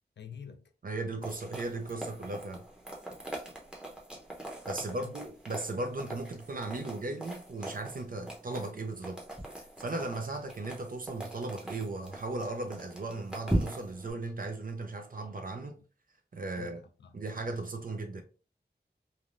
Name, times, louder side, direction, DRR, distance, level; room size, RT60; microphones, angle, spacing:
voice 1, 0.2-0.7 4.7-5.1 16.5-17.2 18.2-18.3, left 7 dB, 85° left, 0.4 m, -47 dB
voice 2, 0.8-2.7 4.7-9.2 9.8-15.8 16.3-16.8 17.1-18.2, right 2 dB, 55° right, 0.5 m, -37 dB
sound 1, 1.2-14.1, right 1 dB, 5° right, 0.7 m, -40 dB
3.3 x 2.2 x 2.4 m
wide cardioid pair, 80°, 18 cm